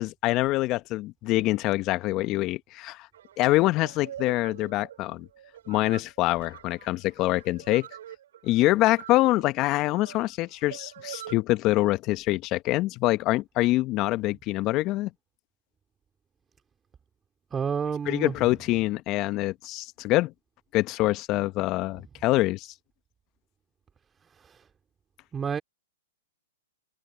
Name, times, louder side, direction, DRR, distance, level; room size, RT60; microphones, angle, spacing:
voice 1, 0.0-3.1 3.4-5.3 5.7-7.9 8.4-15.1 18.1-20.3 20.7-22.7, left 18 dB, 35° left, 1.3 m, -25 dB
sound 1, 3.1-11.4, right 11 dB, 65° right, 5.9 m, -45 dB
voice 2, 17.5-18.3 24.4-24.6 25.3-25.6, right 6 dB, 15° right, 3.1 m, -29 dB
hypercardioid pair, 120°, 0 cm